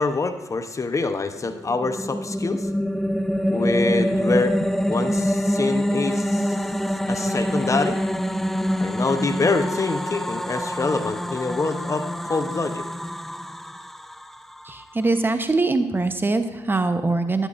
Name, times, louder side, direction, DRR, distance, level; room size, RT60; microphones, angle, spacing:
voice 1, 0.0-2.7 3.5-4.6 4.9-6.6 7.1-8.0 8.8-12.9, left 3 dB, 35° left, 8 dB, 0.9 m, -25 dB
sound 1, 1.5-14.8, equal, 5° left, 0.5 m, -25 dB
voice 2, 14.7-17.5, right 3 dB, 25° right, 8 dB, 1.0 m, -22 dB
13.0 x 11.0 x 2.6 m, 1.3 s
supercardioid pair, 55°, 9 cm